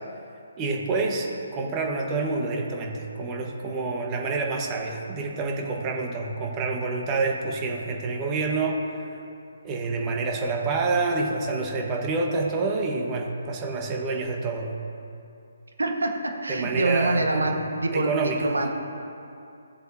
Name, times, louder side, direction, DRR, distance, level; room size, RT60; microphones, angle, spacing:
voice 1, 0.6-9.2 9.6-14.7 16.5-17.5 17.9-18.4, right 3 dB, 25° right, 0 dB, 1.5 m, -28 dB
voice 2, 15.8-18.7, right 2 dB, 80° right, 2 dB, 1.6 m, -25 dB
16.5 x 7.8 x 2.9 m, 2.6 s
figure-of-eight pair, 145°, 0 cm